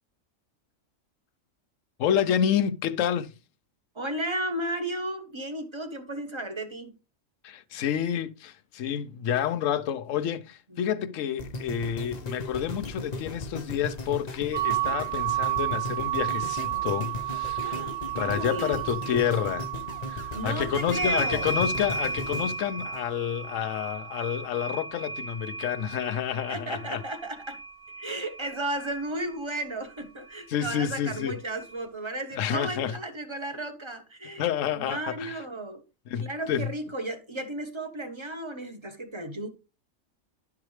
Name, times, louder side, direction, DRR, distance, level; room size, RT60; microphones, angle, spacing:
voice 1, 2.0-3.3 7.4-17.8 18.2-19.7 20.1-27.0 30.5-31.4 32.4-33.0 34.4-35.3 36.1-36.7, left 9 dB, 75° left, 1.0 m, -29 dB
voice 2, 3.9-6.9 10.7-11.2 17.6-18.8 20.3-21.5 26.5-27.6 28.0-35.8 36.2-39.5, right 1 dB, 25° right, 1.1 m, -34 dB
sound 1, 11.4-23.6 24.1-24.2, left 2 dB, 35° left, 0.9 m, -37 dB
sound 2, 14.5-26.3, right 18 dB, 75° right, 1.7 m, -33 dB
sound 3, 20.9-29.0 30.3-30.4 30.7-31.8, right 2 dB, 5° right, 0.8 m, -35 dB
11.5 x 4.8 x 3.2 m
omnidirectional pair, 1.4 m